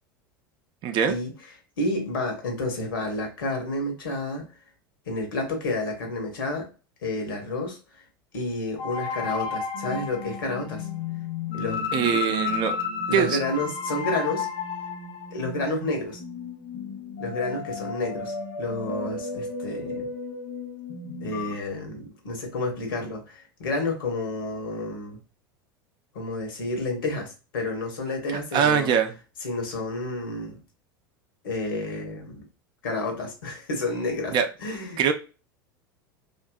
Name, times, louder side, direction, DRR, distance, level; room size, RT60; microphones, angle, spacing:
voice 1, 0.8-1.1 11.9-12.7 13.1-13.4 28.5-29.1 34.3-34.5 35.0-35.1, right 8 dB, 40° right, 7 dB, 0.5 m, -22 dB
voice 2, 1.8-4.5 5.1-6.7 7.0-7.8 8.3-10.9 11.5-12.2 13.1-14.5 15.3-16.2 17.2-20.1 21.2-25.2 26.1-28.9 29.4-30.6 31.4-32.4 32.8-35.1, left 2 dB, 75° left, 3 dB, 1.0 m, -30 dB
sound 1, 8.8-21.5, left 5 dB, 55° left, 0.6 m, -33 dB
2.7 x 2.5 x 2.2 m, 0.33 s
hypercardioid pair, 85°, 12 cm